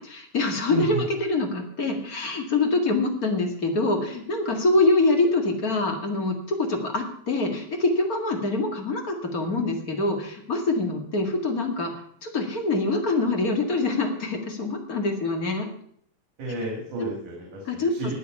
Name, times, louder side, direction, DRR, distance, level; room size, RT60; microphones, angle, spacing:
voice 1, 0.0-11.9 12.2-15.7 17.0-17.1 17.7-17.9, left 2 dB, 35° left, 3 dB, 2.1 m, -25 dB
voice 2, 0.7-1.0 16.4-18.1, equal, 90° right, -1 dB, 4.4 m, -31 dB
19.5 x 7.4 x 5.5 m, 0.62 s
omnidirectional pair, 3.4 m